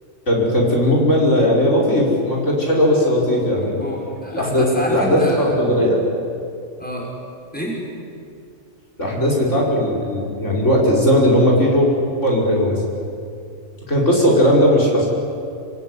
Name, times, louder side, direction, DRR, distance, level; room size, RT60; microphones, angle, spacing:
voice 1, 0.3-3.8 4.3-6.0 9.0-11.9 12.2-12.8 13.9-15.1, equal, 65° left, -3 dB, 5.7 m, -17 dB
voice 2, 3.6-5.5 6.8-7.1 7.5-7.9, left 1 dB, 5° left, -3 dB, 6.1 m, -28 dB
27.0 x 22.0 x 10.0 m, 2.5 s
omnidirectional pair, 1.3 m